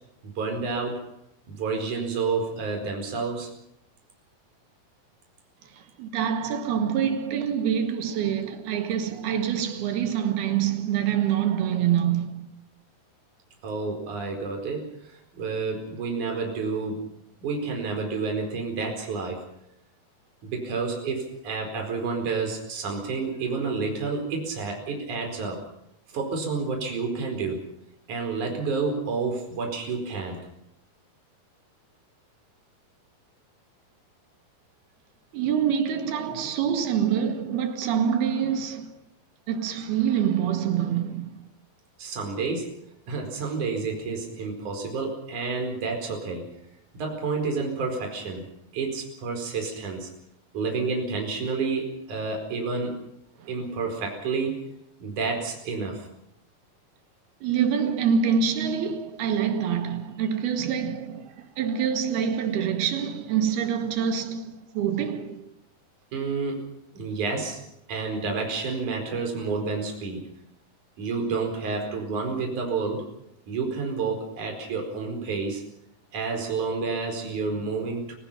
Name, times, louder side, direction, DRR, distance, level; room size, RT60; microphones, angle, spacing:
voice 1, 0.4-1.0 1.5-3.5 13.6-17.0 17.4-19.4 20.4-25.6 26.1-27.6 28.1-30.4 42.0-42.7 43.1-46.4 46.9-48.5 48.7-50.1 50.5-53.0 53.5-54.7 55.0-56.1 66.1-66.7 66.9-67.6 67.9-70.3 71.0-73.0 73.5-75.6 76.1-78.1, right 4 dB, 50° right, 5.9 m, -29 dB
voice 2, 5.7-12.5 35.3-39.0 39.5-41.4 53.4-53.5 57.4-65.5, right 8 dB, 75° right, 3.9 m, -26 dB
29.0 x 17.5 x 5.8 m
omnidirectional pair, 4.5 m